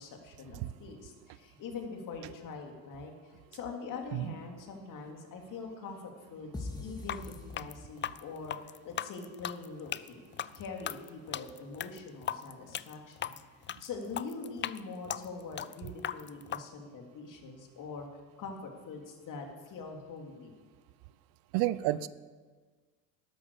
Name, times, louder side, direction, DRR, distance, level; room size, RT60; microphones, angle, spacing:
voice 1, 0.0-10.2 10.5-13.4 13.8-18.1 18.4-20.5, left 4 dB, 55° left, 2 dB, 3.2 m, -43 dB
sound 1, 6.5-8.4, left 2 dB, 10° left, 2.0 m, -42 dB
sound 2, 7.0-16.6, left 10 dB, 30° left, 0.5 m, -38 dB
voice 2, 21.5-22.1, right 15 dB, 70° right, 16 dB, 0.7 m, -30 dB
12.5 x 11.5 x 6.8 m, 1.4 s
hypercardioid pair, 80°, 38 cm